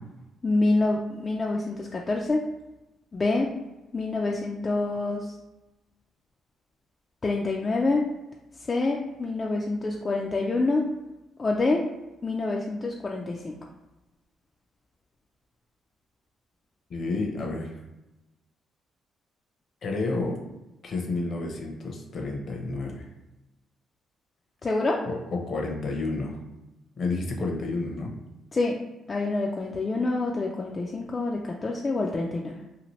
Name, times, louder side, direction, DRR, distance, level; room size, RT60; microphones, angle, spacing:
voice 1, 0.4-2.5 3.1-3.5 3.9-5.3 7.2-8.1 8.7-10.9 11.4-11.8 12.2-13.6 24.6-25.0 28.5-28.8 29.1-32.5, left 2 dB, 30° left, -1 dB, 0.3 m, -26 dB
voice 2, 16.9-17.7 19.8-20.4 20.8-23.1 25.1-26.4 27.0-28.1, left 3 dB, 50° left, 1 dB, 0.7 m, -30 dB
2.7 x 2.5 x 3.0 m, 1.0 s
cardioid pair, 90°, 0 cm